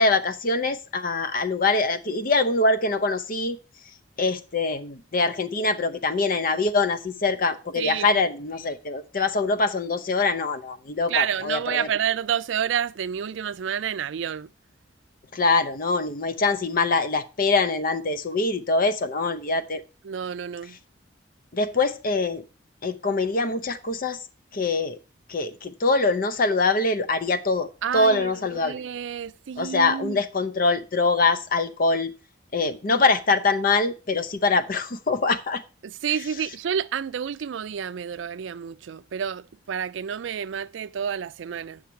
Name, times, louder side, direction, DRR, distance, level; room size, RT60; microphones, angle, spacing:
voice 1, 0.0-3.6 4.2-11.9 15.3-19.8 21.5-22.4 22.8-24.2 24.5-25.0 25.3-28.8 29.6-32.1 32.5-35.6, left 3 dB, 50° left, 0.7 m, -24 dB
voice 2, 7.8-8.2 11.1-14.5 20.0-20.8 27.8-30.2 35.8-41.8, right 8 dB, 80° right, 0.4 m, -29 dB
8.6 x 6.5 x 4.4 m
head